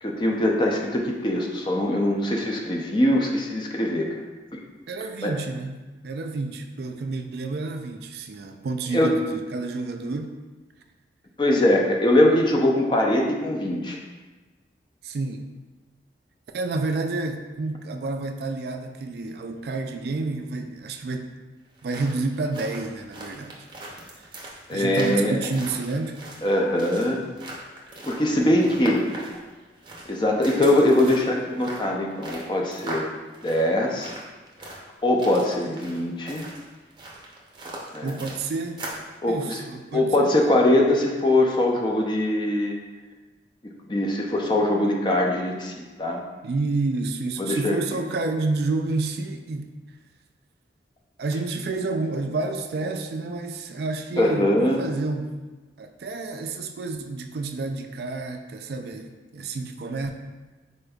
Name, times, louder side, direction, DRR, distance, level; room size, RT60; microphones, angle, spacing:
voice 1, 0.0-4.2 4.5-4.6 5.2-5.3 8.9-9.1 11.4-14.0 24.7-25.4 26.4-27.3 28.0-29.1 30.1-33.1 33.4-34.1 35.0-36.5 37.9-38.2 39.2-39.6 39.9-42.8 43.9-46.2 47.4-47.8 54.2-54.8, left 1 dB, 25° left, 0 dB, 0.4 m, -22 dB
voice 2, 4.9-10.3 15.0-15.4 16.5-21.3 21.8-23.5 24.7-26.2 38.0-38.8 39.3-40.3 46.4-49.7 51.2-55.3 55.8-60.1, right 3 dB, 60° right, 5 dB, 0.3 m, -29 dB
sound 1, 21.6-39.1, right 1 dB, 25° right, 0.6 m, -40 dB
5.0 x 4.2 x 2.3 m, 1.2 s
head